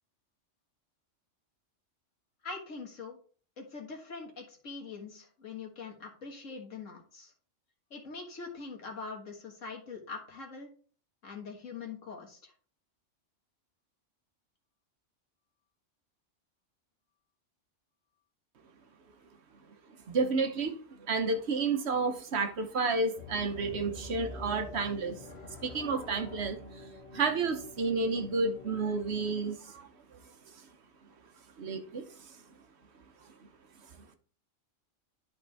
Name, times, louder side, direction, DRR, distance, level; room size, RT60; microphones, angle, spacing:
voice 1, 2.4-3.2 3.6-7.3 7.9-10.7 11.2-12.5, left 4 dB, 85° left, 2.0 m, -43 dB
voice 2, 20.1-25.2 25.6-26.6 27.1-30.2 31.6-32.1, right 4 dB, 60° right, 1.1 m, -31 dB
sound 1, 23.2-29.4, left 2 dB, 55° left, 1.6 m, -46 dB
11.0 x 4.3 x 3.4 m
omnidirectional pair, 1.3 m